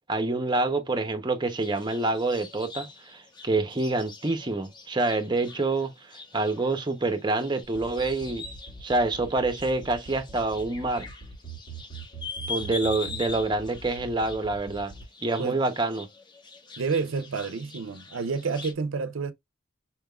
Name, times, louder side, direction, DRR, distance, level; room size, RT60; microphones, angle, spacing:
voice 1, 0.1-8.4 8.8-11.1 12.5-14.9 15.2-16.1, right 2 dB, 20° right, 0.6 m, -27 dB
sound 1, 1.5-18.7, left 4 dB, 20° left, 0.8 m, -43 dB
sound 2, 7.6-15.0, right 4 dB, 50° left, 2.2 m, -42 dB
voice 2, 16.8-19.3, right 4 dB, 75° right, 0.5 m, -29 dB
4.4 x 3.5 x 2.2 m
head